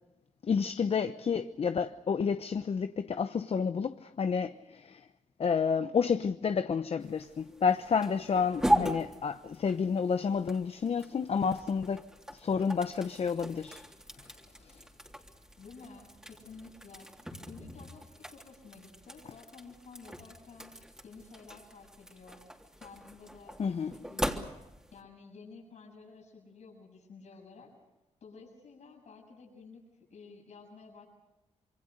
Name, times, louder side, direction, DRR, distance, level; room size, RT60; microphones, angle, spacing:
voice 1, 0.4-5.1 5.4-13.9 14.6-14.8 23.6-23.9, left 6 dB, 55° left, 0.9 m, -30 dB
sound 1, 7.0-25.0, equal, 5° right, 3.3 m, -38 dB
voice 2, 15.6-17.1 17.5-20.7 21.0-22.4 22.8-24.4 24.9-27.7 28.2-31.1, left 4 dB, 70° left, 7.5 m, -52 dB
27.0 x 23.0 x 6.6 m
cardioid pair, 70°, 12 cm